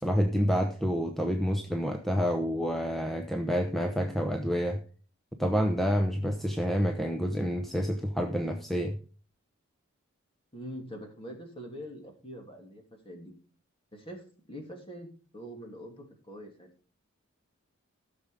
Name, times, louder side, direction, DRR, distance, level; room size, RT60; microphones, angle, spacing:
voice 1, 0.0-4.8 5.4-9.0, equal, ahead, 5 dB, 0.8 m, -28 dB
voice 2, 10.5-13.3 13.9-15.1 15.3-16.7, equal, 25° left, 3 dB, 2.9 m, -44 dB
15.0 x 6.8 x 5.0 m, 0.40 s
head